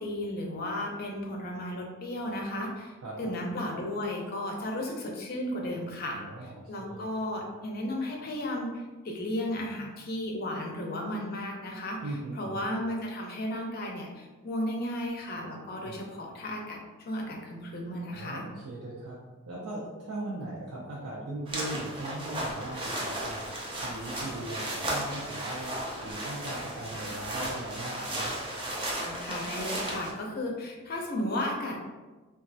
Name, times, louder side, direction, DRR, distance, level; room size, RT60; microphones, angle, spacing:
voice 1, 0.0-12.0 12.4-18.4 29.0-31.8, left 1 dB, 40° left, 0 dB, 0.5 m, -34 dB
voice 2, 3.0-3.4 6.1-7.1 12.0-12.6 15.8-16.0 18.1-19.2 19.5-28.3, right 1 dB, 85° right, -6 dB, 0.5 m, -39 dB
sound 1, 21.5-30.1, right 1 dB, 25° right, 0.4 m, -35 dB
3.0 x 2.3 x 2.6 m, 1.2 s
head